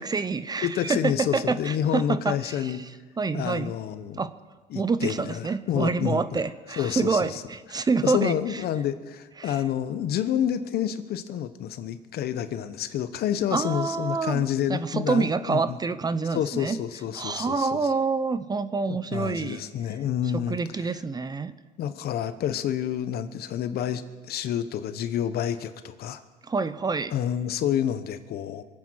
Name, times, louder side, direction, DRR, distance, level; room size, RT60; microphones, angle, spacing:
voice 1, 0.0-2.9 3.2-3.8 4.2-4.3 4.7-8.6 9.4-9.6 13.5-16.8 17.1-19.6 20.3-21.5 26.5-27.1, right 4 dB, 25° right, 13 dB, 0.7 m, -27 dB
voice 2, 0.6-2.8 3.3-4.2 4.7-6.4 6.8-7.4 8.0-15.8 16.3-17.9 18.9-20.9 21.8-26.2 27.1-28.6, left 10 dB, 70° left, 12 dB, 1.0 m, -29 dB
23.5 x 8.7 x 6.4 m, 1.4 s
cardioid pair, 110°, 17 cm